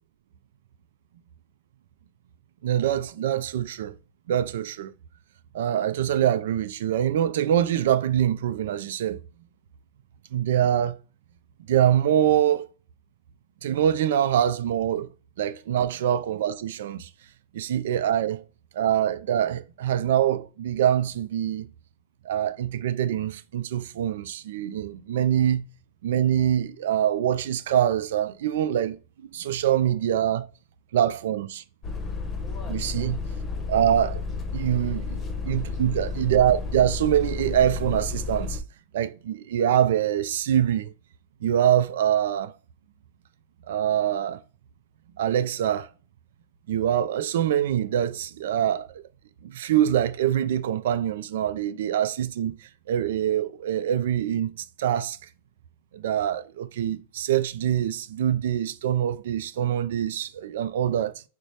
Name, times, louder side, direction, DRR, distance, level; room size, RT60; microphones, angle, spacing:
voice 1, 2.6-3.9 4.3-4.9 5.5-9.2 10.3-11.0 11.7-12.7 13.6-15.1 15.4-17.1 17.5-18.4 18.7-21.7 22.2-25.6 26.0-29.0 29.3-30.5 30.9-31.6 32.7-33.2 33.7-34.2 34.5-38.6 38.9-40.9 41.4-42.5 43.7-44.4 45.2-45.9 46.7-49.0 49.4-54.5 54.8-55.2 55.9-61.2, right 10 dB, 75° right, 0.4 m, -24 dB
sound 1, 31.8-38.6, left 4 dB, 25° left, 0.8 m, -32 dB
3.2 x 2.1 x 4.1 m
hypercardioid pair, 120°, 0 cm